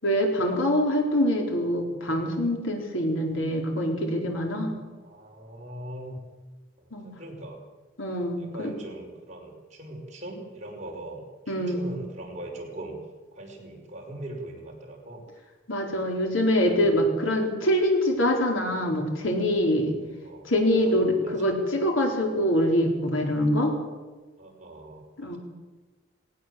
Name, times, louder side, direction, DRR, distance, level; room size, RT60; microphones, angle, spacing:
voice 1, 0.0-4.7 6.9-7.1 8.0-8.8 11.5-11.8 15.7-20.0 20.4-23.7 25.2-25.4, equal, 85° left, 1 dB, 4.6 m, -24 dB
voice 2, 5.0-6.2 6.8-7.7 8.4-13.0 13.3-15.2 16.2-16.3 16.6-17.1 20.2-21.6 24.4-25.4, right 1 dB, 35° right, 0 dB, 5.5 m, -41 dB
20.0 x 18.0 x 8.0 m, 1.3 s
head